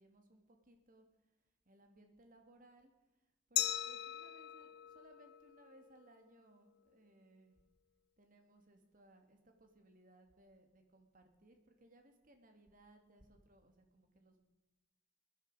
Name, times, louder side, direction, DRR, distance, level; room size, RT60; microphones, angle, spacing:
voice 1, 0.0-7.6 8.2-14.4, right 1 dB, 45° right, 5 dB, 2.4 m, -65 dB
Glass, 3.6-6.3, left 13 dB, 55° left, 0.5 m, -40 dB
20.5 x 11.0 x 5.1 m, 1.1 s
head